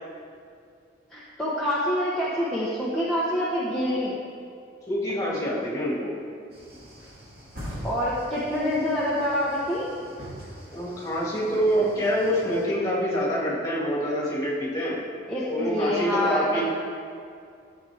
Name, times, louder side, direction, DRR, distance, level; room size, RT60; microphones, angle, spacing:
voice 1, 1.1-4.1 7.8-9.9 15.3-16.6, left 1 dB, ahead, -9 dB, 1.1 m, -26 dB
voice 2, 4.9-6.1 10.7-15.0 15.5-16.6, equal, 20° left, -6 dB, 2.4 m, -26 dB
sound 1, 6.5-12.7, equal, 55° right, 2.8 m, -42 dB
13.0 x 7.8 x 3.5 m, 2.3 s
head